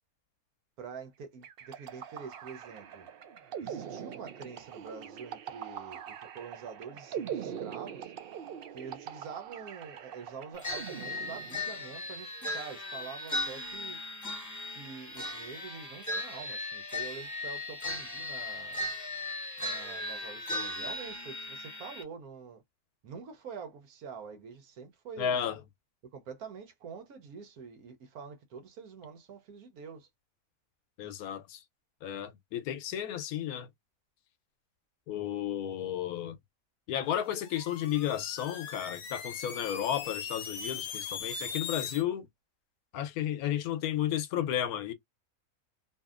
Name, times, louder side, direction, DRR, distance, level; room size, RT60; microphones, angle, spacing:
voice 1, 0.8-3.1 3.6-8.1 8.7-14.0 14.7-18.8 19.6-22.6 23.0-25.4 26.1-30.1, right 6 dB, 85° right, 1.3 m, -46 dB
sound 1, 1.4-11.9, right 9 dB, 70° right, 0.5 m, -42 dB
sound 2, 10.6-22.0, left 1 dB, 15° left, 0.9 m, -37 dB
voice 2, 25.2-25.6 31.0-31.6 32.0-33.7 35.1-36.4 36.9-42.3 42.9-44.9, left 10 dB, 85° left, 1.1 m, -33 dB
sound 3, 37.2-42.0, left 6 dB, 60° left, 0.8 m, -40 dB
2.7 x 2.7 x 2.4 m
omnidirectional pair, 1.5 m